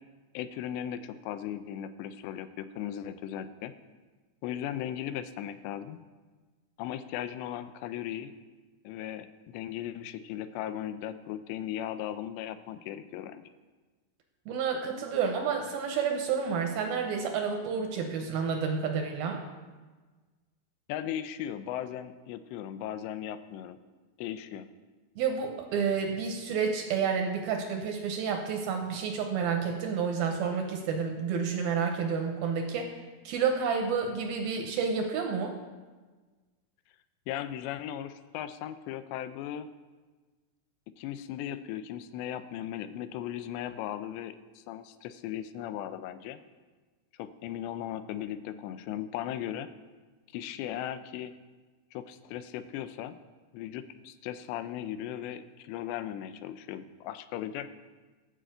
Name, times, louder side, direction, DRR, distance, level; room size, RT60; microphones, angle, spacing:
voice 1, 0.3-3.7 4.4-6.0 6.8-8.3 8.8-13.5 20.9-23.8 24.2-24.7 37.3-39.7 41.0-46.4 47.2-49.7 50.3-51.3 51.9-53.2 53.5-57.7, left 11 dB, 90° left, 12 dB, 2.8 m, -37 dB
voice 2, 14.5-19.4 25.2-32.9 33.2-35.6, right 6 dB, 75° right, 3 dB, 2.4 m, -30 dB
12.5 x 5.1 x 7.8 m, 1.3 s
omnidirectional pair, 4.9 m